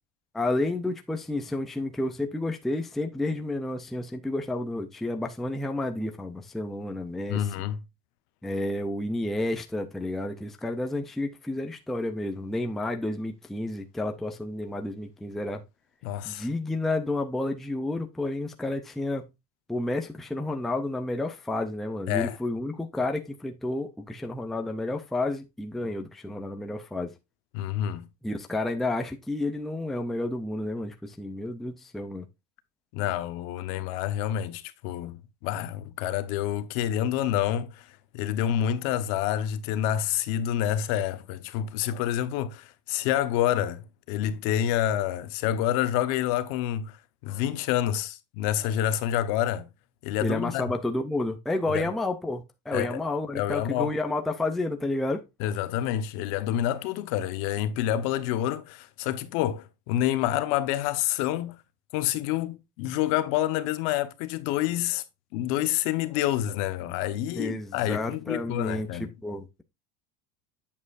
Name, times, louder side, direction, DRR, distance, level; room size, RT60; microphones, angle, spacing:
voice 1, 0.3-7.5 8.4-15.6 16.2-19.3 19.7-27.1 28.2-32.2 50.2-55.2 67.3-68.9 69.2-69.6, left 2 dB, ahead, 0.4 m, -30 dB
voice 2, 7.3-7.8 16.0-16.5 22.1-22.4 27.5-28.1 32.9-47.0 47.2-49.7 50.0-50.6 51.7-51.9 52.7-53.0 53.3-53.9 55.4-61.6 61.9-65.0 65.3-69.1, left 11 dB, 55° left, 0.9 m, -28 dB
8.4 x 7.3 x 2.4 m
cardioid pair, 180°, 21 cm